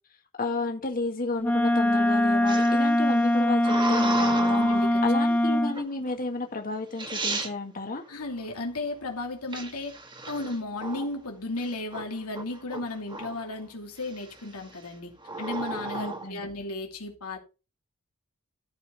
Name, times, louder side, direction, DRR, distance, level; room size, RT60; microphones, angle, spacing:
voice 1, 0.4-4.6 5.0-8.0 15.9-16.4, left 3 dB, 40° left, 1.8 m, -32 dB
Wind instrument woodwind instrument, 1.4-5.8, left 1 dB, 5° left, 0.5 m, -22 dB
sound 1, 2.5-5.0 5.7-6.1 6.7-6.8 7.0-7.5 9.5-11.2 11.6-12.0 12.3-13.5 14.0-14.4 15.2-16.3, right 2 dB, 20° right, 1.4 m, -34 dB
voice 2, 4.5-5.0 8.1-10.0 10.3-17.4, left 2 dB, 85° left, 2.7 m, -34 dB
13.5 x 5.5 x 4.1 m
head